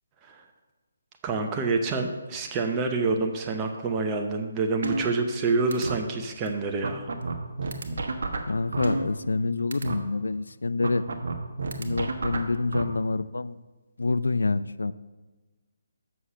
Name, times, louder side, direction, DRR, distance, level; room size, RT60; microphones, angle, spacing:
voice 1, 1.2-7.1, right 3 dB, 20° right, 3 dB, 0.7 m, -27 dB
sound 1, 4.8-5.4 5.7-6.0 6.5-6.6 6.8-9.4 9.7-10.0 10.8-12.8, right 3 dB, 60° right, 1.1 m, -30 dB
voice 2, 8.5-11.0 11.8-13.6 14.0-14.9, left 3 dB, 75° left, 15 dB, 0.4 m, -27 dB
7.2 x 6.4 x 5.7 m, 1.2 s
figure-of-eight pair, 145°, 0 cm